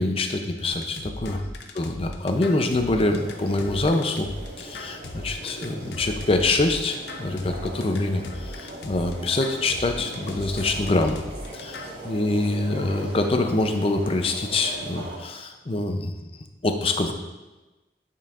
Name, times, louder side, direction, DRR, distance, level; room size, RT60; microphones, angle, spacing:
voice 1, 0.0-1.4 1.8-4.3 4.6-11.2 11.5-16.1 16.6-17.1, left 2 dB, 35° left, 5 dB, 0.5 m, -25 dB
sound 1, 0.6-12.0, left 2 dB, 75° left, 0.6 m, -38 dB
sound 2, 3.0-15.2, right 1 dB, 70° right, 1.4 m, -40 dB
9.1 x 5.3 x 2.5 m, 1.1 s
head